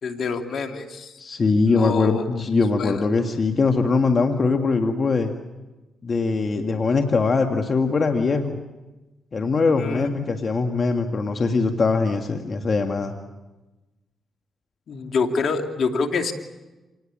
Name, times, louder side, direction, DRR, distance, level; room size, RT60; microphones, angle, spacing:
voice 1, 0.0-1.1 1.7-2.2 2.8-3.1 9.8-10.0 14.9-16.3, left 4 dB, 65° left, 5 dB, 2.6 m, -26 dB
voice 2, 1.2-5.3 6.0-8.6 9.3-13.1, left 4 dB, 50° left, 5 dB, 1.9 m, -22 dB
27.5 x 19.5 x 8.9 m, 1.1 s
supercardioid pair, 55°, 0 cm